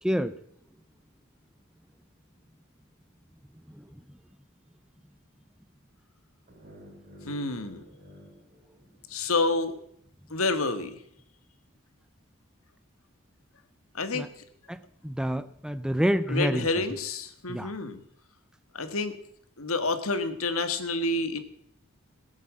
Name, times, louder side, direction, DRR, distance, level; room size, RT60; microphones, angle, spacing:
voice 1, 0.0-0.3 3.7-4.2 14.1-14.3 14.7-16.8 17.5-17.7, equal, 5° right, 14 dB, 0.5 m, -29 dB
sound 1, 6.5-9.5, equal, 40° right, 4.5 m, -51 dB
voice 2, 7.2-7.8 9.1-9.8 10.3-11.0 13.9-14.3 16.3-18.0 18.7-19.2 19.6-21.4, left 3 dB, 85° left, 10 dB, 1.6 m, -28 dB
19.0 x 8.3 x 7.5 m, 0.71 s
head